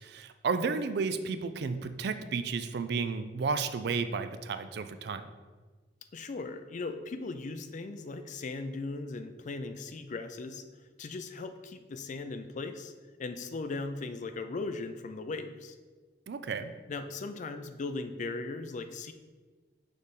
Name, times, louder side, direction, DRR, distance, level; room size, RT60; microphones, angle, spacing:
voice 1, 0.0-5.2 16.3-16.7, right 4 dB, 65° right, 10 dB, 0.4 m, -32 dB
voice 2, 6.1-10.6 11.0-12.9 13.2-15.8 16.9-19.1, left 3 dB, 45° left, 8 dB, 0.4 m, -38 dB
6.4 x 3.3 x 5.4 m, 1.4 s
head